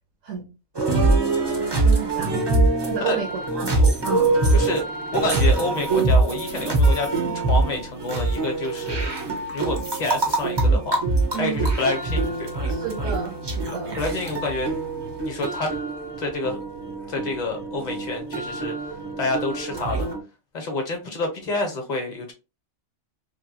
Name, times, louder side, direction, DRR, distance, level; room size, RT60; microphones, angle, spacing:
sound 1, 0.7-20.2, right 2 dB, 35° right, 0.4 m, -23 dB
voice 1, 1.8-2.3 2.8-3.7 4.0-4.4 11.3-11.6 12.7-14.0, right 7 dB, 75° right, -1 dB, 1.1 m, -31 dB
voice 2, 4.5-4.8 5.1-7.1 7.3-9.1 9.5-11.0 11.3-12.8 13.7-14.7 15.2-15.7 16.2-16.6 17.1-18.7 19.2-20.1 20.5-22.3, left 2 dB, 40° left, 3 dB, 0.8 m, -28 dB
3.2 x 2.2 x 2.6 m, 0.29 s
omnidirectional pair, 1.4 m